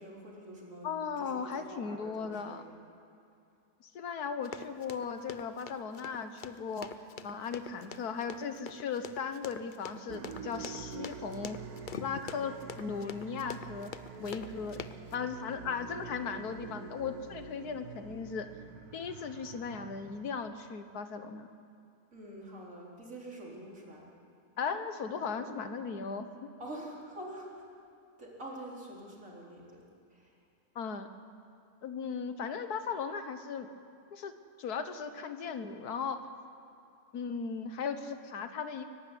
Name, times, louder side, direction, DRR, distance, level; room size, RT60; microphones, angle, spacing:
voice 1, 0.0-0.9 1.2-2.7 22.1-24.1 25.4-25.6 26.6-27.7 28.2-29.8 30.1-30.3, right 1 dB, 55° right, -3 dB, 4.4 m, -46 dB
voice 2, 0.8-2.6 3.8-6.9 7.2-11.6 12.0-13.9 14.2-14.8 15.1-18.5 18.9-21.5 24.6-26.5 30.7-31.1 31.8-33.7 34.1-34.3 34.6-36.2 37.1-38.8, left 6 dB, 85° left, 9 dB, 1.7 m, -37 dB
Run, 4.4-15.1, left 6 dB, 50° left, 0.6 m, -44 dB
sound 1, 10.1-20.7, right 6 dB, 80° right, 1.5 m, -47 dB
23.5 x 12.0 x 9.9 m, 2.6 s
omnidirectional pair, 1.6 m